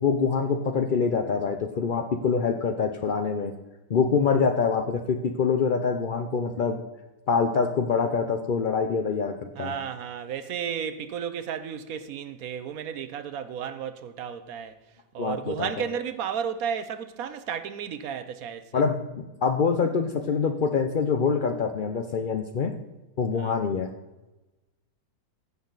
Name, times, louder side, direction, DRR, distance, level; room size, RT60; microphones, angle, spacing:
voice 1, 0.0-3.5 3.9-6.8 7.3-9.7 15.2-15.7 18.7-22.7 23.2-23.9, left 5 dB, 70° left, 0.4 m, -25 dB
voice 2, 9.6-14.7 15.1-18.8 23.4-23.5, right 8 dB, 65° right, 1.1 m, -33 dB
16.5 x 6.5 x 4.0 m
omnidirectional pair, 1.8 m